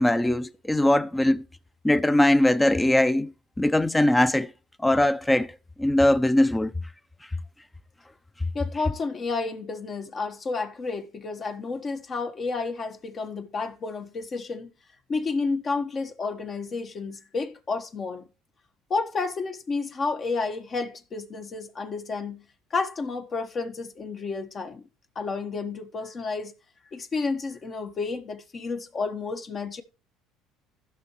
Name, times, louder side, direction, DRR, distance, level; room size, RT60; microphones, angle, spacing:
voice 1, 0.0-1.4 1.8-4.5 4.8-6.7, left 1 dB, 10° left, 0.7 m, -21 dB
voice 2, 8.5-14.7 15.1-18.3 18.9-22.4 22.7-24.8 25.1-26.5 26.9-29.8, left 4 dB, 40° left, 1.3 m, -31 dB
16.0 x 5.7 x 3.1 m
supercardioid pair, 80°, 0 cm